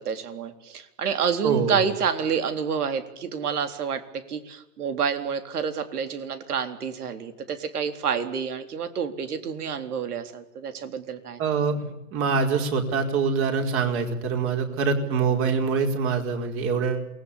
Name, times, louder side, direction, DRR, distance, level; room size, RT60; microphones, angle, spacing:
voice 1, 0.0-11.4, right 6 dB, 70° right, 9 dB, 4.1 m, -28 dB
voice 2, 1.4-1.8 11.4-17.0, right 5 dB, 25° right, 4 dB, 5.0 m, -24 dB
28.0 x 21.0 x 8.6 m, 0.84 s
hypercardioid pair, 135°, 48 cm